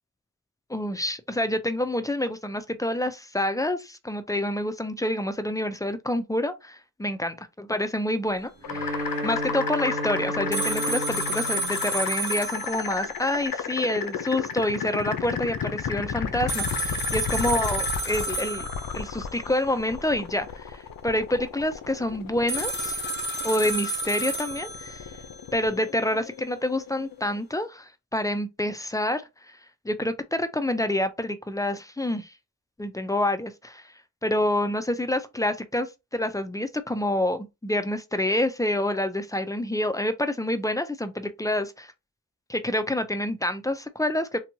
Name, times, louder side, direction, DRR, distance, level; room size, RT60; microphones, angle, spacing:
voice 1, 0.7-18.7 18.9-23.0 23.4-25.1 25.5-29.6 29.8-32.3 32.8-33.8 34.2-35.9 36.1-41.9 42.5-44.4, left 1 dB, 10° left, 0.3 m, -27 dB
sound 1, 8.6-27.4, left 6 dB, 65° left, 0.5 m, -34 dB
Bowed string instrument, 8.6-12.9, equal, 35° right, 0.7 m, -33 dB
sound 2, 10.5-13.6 13.8-13.9 16.5-19.5 22.5-25.5, right 1 dB, 30° left, 0.9 m, -31 dB
2.8 x 2.2 x 2.6 m
cardioid pair, 40°, 37 cm